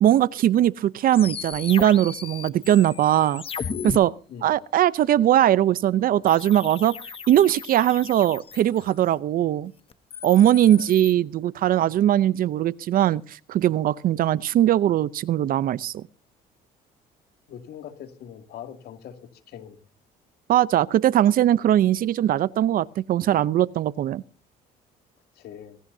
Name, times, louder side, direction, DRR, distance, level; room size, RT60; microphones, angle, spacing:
voice 1, 0.0-3.4 3.8-4.1 4.4-7.0 7.3-9.7 10.2-16.0 20.5-24.2, right 12 dB, 55° right, 0.6 m, -20 dB
sound 1, 1.1-4.0 6.3-9.1 9.9-11.1, left 6 dB, 35° left, 1.0 m, -36 dB
voice 2, 17.5-19.2 19.5-19.8 25.4-25.8, left 9 dB, 70° left, 2.5 m, -41 dB
21.5 x 17.0 x 2.7 m
cardioid pair, 110°, 17 cm